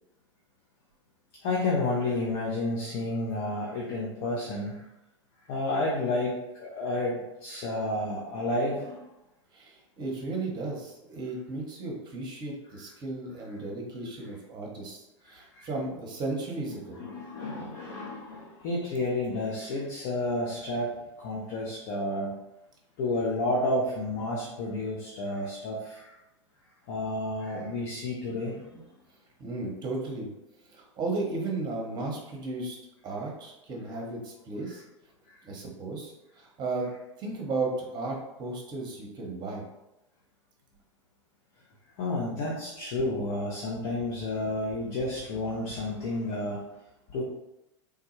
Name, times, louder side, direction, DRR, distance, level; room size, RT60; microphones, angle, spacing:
voice 1, 1.4-4.9 5.5-9.0 15.3-15.7 17.0-22.3 23.0-26.1 26.9-28.9 35.3-35.4 42.0-46.6 47.1-47.2, left 2 dB, 45° left, -4 dB, 0.7 m, -31 dB
voice 2, 9.5-17.1 29.4-30.3 30.7-32.8 33.0-34.8 35.4-36.9 37.2-39.6, right 3 dB, 30° right, 0 dB, 0.9 m, -35 dB
3.4 x 2.2 x 3.0 m, 0.91 s
figure-of-eight pair, 90°, 16 cm